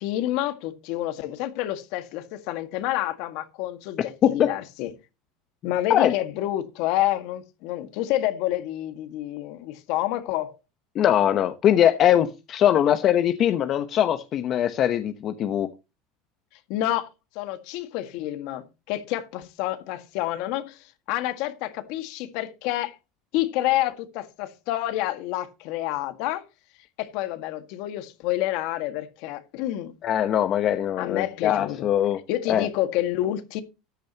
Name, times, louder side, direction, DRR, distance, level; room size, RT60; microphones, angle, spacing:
voice 1, 0.0-4.9 5.6-10.6 16.7-17.1 17.4-22.9 23.3-26.4 27.0-29.9 31.0-31.9 32.3-33.6, left 14 dB, 65° left, 1.8 m, -28 dB
voice 2, 10.9-15.7 30.0-32.2 32.5-32.7, left 10 dB, 40° left, 0.9 m, -21 dB
14.0 x 10.5 x 2.9 m
supercardioid pair, 125°, 0 cm